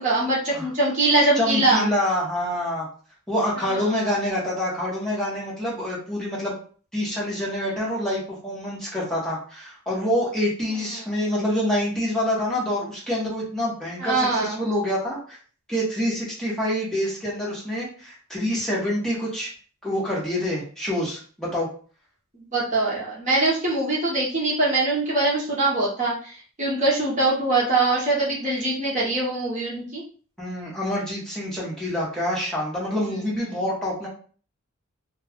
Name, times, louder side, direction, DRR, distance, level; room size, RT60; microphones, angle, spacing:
voice 1, 0.0-1.9 3.6-4.1 14.0-14.6 22.5-30.0 33.5-33.6, right 2 dB, 35° right, -5 dB, 0.8 m, -23 dB
voice 2, 1.4-2.9 3.3-6.5 6.9-15.4 15.7-19.5 19.8-21.7 30.4-34.1, left 1 dB, 5° left, -6 dB, 1.0 m, -26 dB
2.4 x 2.3 x 3.4 m, 0.41 s
head